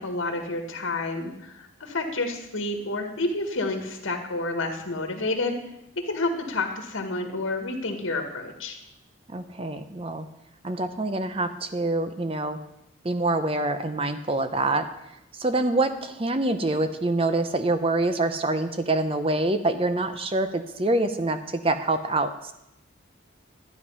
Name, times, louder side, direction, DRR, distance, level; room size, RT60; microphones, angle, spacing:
voice 1, 0.0-5.6 6.0-8.8, left 2 dB, 85° left, 4 dB, 1.7 m, -29 dB
voice 2, 9.3-10.3 10.6-12.6 13.0-14.9 15.4-22.5, right 2 dB, 30° right, 9 dB, 0.7 m, -26 dB
12.5 x 9.2 x 5.6 m, 0.86 s
head